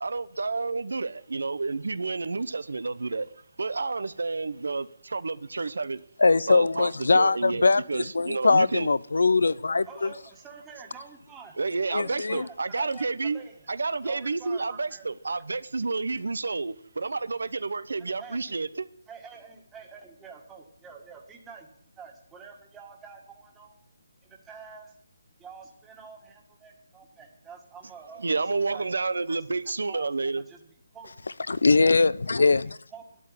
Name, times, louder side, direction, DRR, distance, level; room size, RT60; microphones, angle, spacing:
voice 1, 0.0-3.3 3.6-6.0 6.5-8.9 11.6-13.4 13.7-18.9 28.2-30.4, right 3 dB, 80° right, 0.8 m, -30 dB
voice 2, 6.2-10.1 11.9-12.4 31.5-32.6, left 3 dB, 85° left, 0.6 m, -21 dB
voice 3, 9.9-11.6 11.9-13.7 14.0-15.1 18.0-18.6 19.1-23.9 24.2-24.9 25.4-28.8 29.3-29.4 29.8-30.1 30.4-30.6 30.9-31.1 32.4-33.2, right 5 dB, 10° right, 1.8 m, -48 dB
12.5 x 8.6 x 9.6 m
hypercardioid pair, 165°, 0 cm